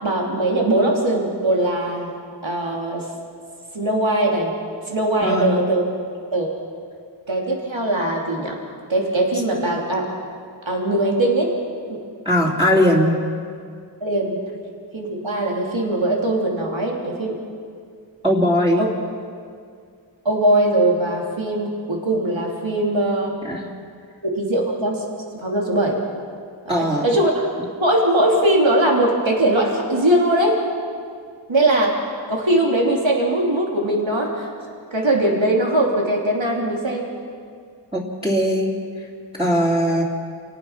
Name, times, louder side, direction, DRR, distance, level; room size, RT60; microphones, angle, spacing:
voice 1, 0.0-2.1 2.4-3.0 3.7-4.5 4.9-5.8 6.3-6.5 7.3-8.6 8.9-10.1 10.6-11.5 11.9-12.0 14.0-14.4 14.9-17.4 18.8-18.9 20.2-23.3 24.2-25.0 25.3-26.0 26.6-27.4 27.8-30.6 31.5-32.0 32.3-34.5 34.9-37.1, right 1 dB, 80° right, -1 dB, 3.3 m, -20 dB
voice 2, 5.2-5.6 12.2-13.2 18.2-18.8 23.4-23.6 26.7-27.0 37.9-38.7 39.4-40.0, equal, 10° right, -5 dB, 3.2 m, -19 dB
29.0 x 18.0 x 5.9 m, 2.2 s
wide cardioid pair, 50°, 45 cm